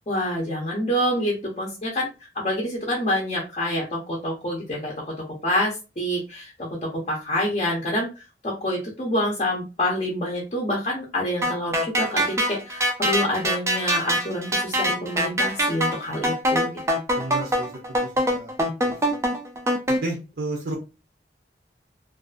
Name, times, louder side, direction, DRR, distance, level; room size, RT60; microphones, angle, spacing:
voice 1, 0.1-2.1 2.3-4.9 5.4-6.5 7.1-8.1 8.4-16.7, left 1 dB, 35° left, -3 dB, 0.6 m, -27 dB
sound 1, 11.4-20.0, equal, 15° right, 0.3 m, -23 dB
voice 2, 17.1-18.5 18.8-19.2 20.0-20.8, right 2 dB, 65° right, 0 dB, 0.5 m, -33 dB
2.5 x 2.4 x 2.3 m, 0.30 s
head